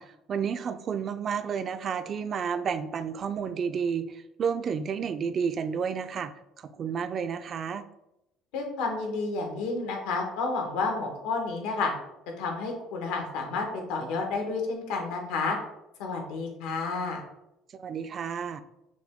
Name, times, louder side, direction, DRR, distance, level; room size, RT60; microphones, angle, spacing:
voice 1, 0.0-6.3 6.6-7.9 17.7-18.6, right 6 dB, 40° right, 11 dB, 0.3 m, -31 dB
voice 2, 8.5-11.9 12.4-15.6 16.0-17.2, left 3 dB, 85° left, 2 dB, 1.0 m, -30 dB
5.9 x 2.2 x 3.5 m, 0.87 s
cardioid pair, 110°, 0 cm